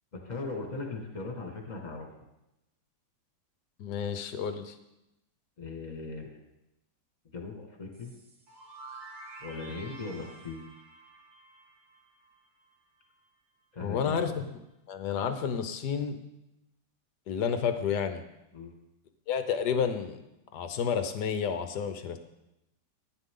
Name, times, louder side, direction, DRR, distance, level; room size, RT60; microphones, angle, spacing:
voice 1, 0.1-2.1 5.6-6.4 7.3-8.1 9.4-10.7 13.7-14.2 18.5-18.7, left 3 dB, 20° left, 1 dB, 1.9 m, -39 dB
voice 2, 3.8-4.8 13.8-14.5 14.9-16.2 17.3-18.2 19.3-20.2 20.5-22.2, left 7 dB, 60° left, 9 dB, 1.2 m, -30 dB
sound 1, 7.9-12.7, right 2 dB, 85° right, 2.9 m, -49 dB
14.0 x 9.9 x 3.8 m, 0.90 s
omnidirectional pair, 2.4 m